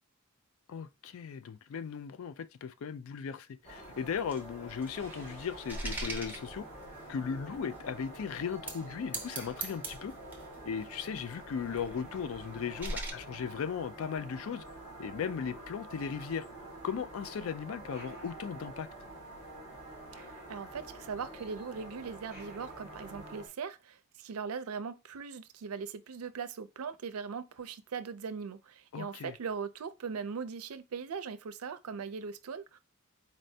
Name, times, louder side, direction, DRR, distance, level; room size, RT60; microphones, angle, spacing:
voice 1, 0.7-6.7 7.1-10.1 10.7-14.6 15.0-16.5 16.8-18.9 28.9-29.3, left 7 dB, 65° left, 0.3 m, -37 dB
sound 1, 3.6-23.5, right 1 dB, 30° left, 1.3 m, -48 dB
sound 2, 3.8-7.1 7.7-7.8 8.5-8.8 9.1-10.6 11.2-13.1, right 2 dB, 10° right, 0.6 m, -42 dB
sound 3, 4.9-13.7 14.5-14.9 15.5-15.6, equal, 15° left, 1.8 m, -60 dB
voice 2, 20.2-32.8, right 5 dB, 85° right, 0.4 m, -40 dB
4.2 x 3.2 x 2.7 m
head